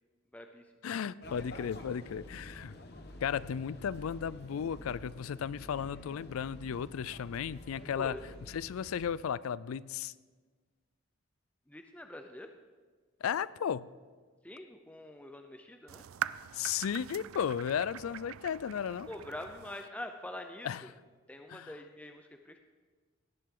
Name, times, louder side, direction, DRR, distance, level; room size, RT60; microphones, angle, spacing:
voice 1, 0.3-0.7 8.0-8.2 11.7-12.5 14.4-16.0 19.1-20.9 21.3-22.6, left 1 dB, 5° left, 5 dB, 0.5 m, -45 dB
voice 2, 0.8-2.8 3.2-8.2 8.5-10.1 13.2-13.9 16.5-19.1 20.6-20.8 21.5-21.7, left 8 dB, 85° left, 19 dB, 0.4 m, -35 dB
sound 1, 1.2-9.1, left 1 dB, 50° left, 1.1 m, -49 dB
sound 2, 15.9-19.9, right 10 dB, 85° right, 0.4 m, -42 dB
18.0 x 11.0 x 3.8 m, 1.4 s
head